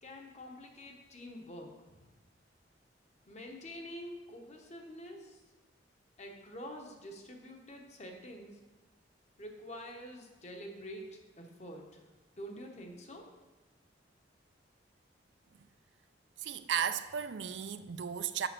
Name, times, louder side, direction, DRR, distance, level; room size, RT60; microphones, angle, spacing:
voice 1, 0.0-1.7 2.0-2.1 3.3-5.4 6.2-8.6 9.4-12.0 12.4-13.3, equal, 35° left, 1.1 m, -47 dB
voice 2, 16.4-18.5, right 8 dB, 70° right, 0.4 m, -35 dB
6.9 x 6.3 x 6.0 m
head